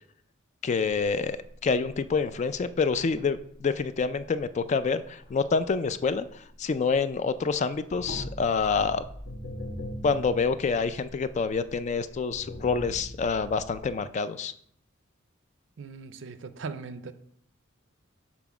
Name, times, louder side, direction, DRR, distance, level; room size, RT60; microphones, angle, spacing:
voice 1, 0.6-1.4 1.6-9.0 10.0-14.5, left 5 dB, 35° left, 0.3 m, -27 dB
sound 1, 1.4-7.2 7.5-14.0, left 1 dB, 60° left, 1.1 m, -42 dB
voice 2, 15.8-17.1, right 4 dB, 65° right, 0.5 m, -39 dB
6.0 x 3.7 x 5.9 m
head